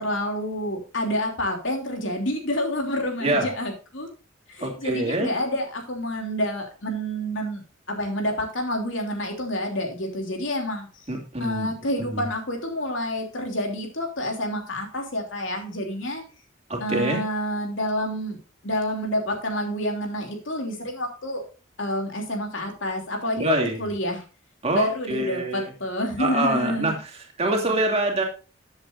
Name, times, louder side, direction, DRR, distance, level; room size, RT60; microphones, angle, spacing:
voice 1, 0.0-4.1 4.5-7.6 7.9-11.0 11.4-16.2 16.8-18.4 18.6-21.4 21.8-24.2 24.7-27.0 27.7-27.8, left 1 dB, 75° left, 2 dB, 3.1 m, -28 dB
voice 2, 4.6-5.3 11.1-11.7 12.0-12.3 16.7-17.2 23.4-23.9 24.6-25.7 26.2-26.9 27.4-28.2, right 1 dB, 30° right, 1 dB, 2.8 m, -25 dB
14.5 x 8.0 x 2.7 m, 0.35 s
head